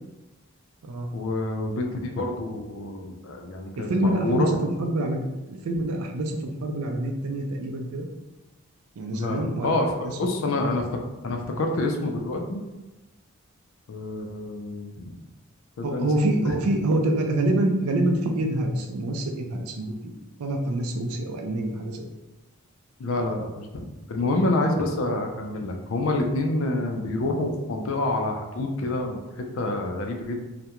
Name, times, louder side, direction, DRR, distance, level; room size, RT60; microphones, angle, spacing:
voice 1, 1.1-4.6 9.1-9.9 10.2-10.9 11.2-12.6 13.9-15.1 15.8-16.6 23.0-30.4, left 2 dB, 60° left, 3 dB, 0.4 m, -27 dB
voice 2, 3.8-8.1 9.0-9.8 10.0-10.2 15.8-20.1 20.4-22.1 24.6-24.7, right 1 dB, 80° right, 3 dB, 0.4 m, -26 dB
2.3 x 2.1 x 2.8 m, 1.1 s
head